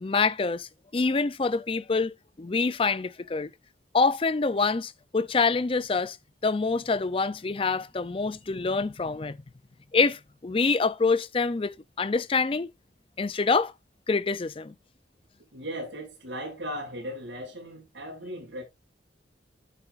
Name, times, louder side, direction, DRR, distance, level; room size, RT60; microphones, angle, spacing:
voice 1, 0.0-3.5 3.9-6.2 6.4-9.4 9.9-12.7 13.2-13.7 14.1-14.7, left 4 dB, 30° left, 0.4 m, -26 dB
voice 2, 15.5-18.6, equal, 75° right, 6.1 m, -37 dB
12.5 x 7.0 x 2.5 m
head